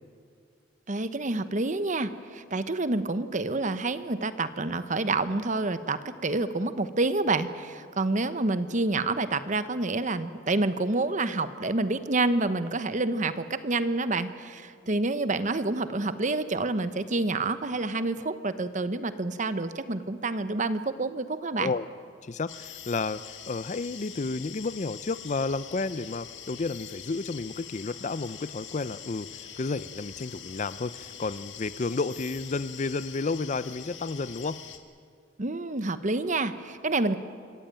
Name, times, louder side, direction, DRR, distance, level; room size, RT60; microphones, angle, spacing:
voice 1, 0.9-21.7 35.4-37.2, right 2 dB, 40° right, 12 dB, 1.0 m, -28 dB
voice 2, 22.2-34.6, left 3 dB, 40° left, 16 dB, 0.5 m, -31 dB
sound 1, 22.5-34.8, left 9 dB, 75° left, 1.8 m, -44 dB
26.0 x 14.5 x 8.9 m, 2.2 s
head